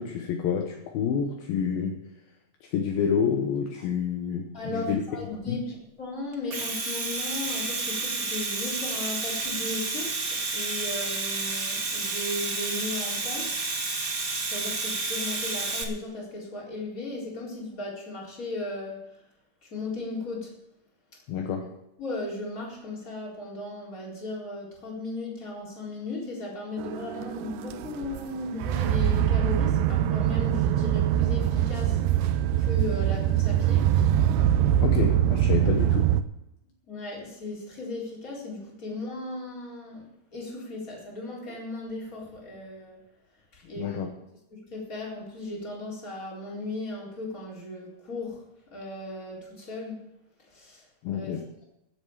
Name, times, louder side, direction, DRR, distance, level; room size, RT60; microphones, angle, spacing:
voice 1, 0.0-2.0 2.6-5.0 5.5-5.6 21.3-21.7 34.8-36.1 43.8-44.1 51.0-51.4, left 7 dB, 70° left, 4 dB, 2.6 m, -28 dB
voice 2, 4.5-13.6 14.5-19.2 19.6-20.6 22.0-33.9 36.9-43.1 43.5-44.0 44.7-50.1 50.4-50.9 51.1-51.6, left 2 dB, 20° left, -3 dB, 4.2 m, -36 dB
Domestic sounds home sounds, 6.3-15.8, right 3 dB, 60° right, 0.9 m, -30 dB
sound 1, 26.8-36.2, right 11 dB, 80° right, 2.7 m, -24 dB
15.5 x 8.2 x 7.3 m, 0.85 s
omnidirectional pair, 4.8 m